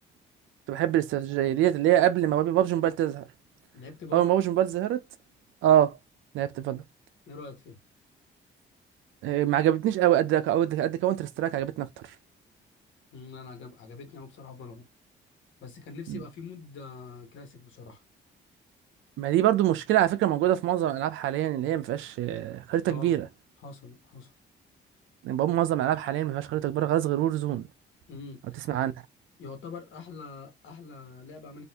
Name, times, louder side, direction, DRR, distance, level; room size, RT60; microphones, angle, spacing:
voice 1, 0.7-3.2 4.1-5.0 5.6-5.9 6.3-6.8 9.2-11.9 16.1-16.2 19.2-23.3 25.2-27.7 28.7-28.9, right 12 dB, 85° right, 0.5 m, -25 dB
voice 2, 3.7-4.3 6.6-6.7 7.3-7.8 13.1-14.9 15.6-18.0 22.9-23.2 23.6-24.3 28.1-28.4 29.4-31.6, left 4 dB, 75° left, 1.2 m, -44 dB
2.6 x 2.5 x 3.4 m
cardioid pair, 90°, 20 cm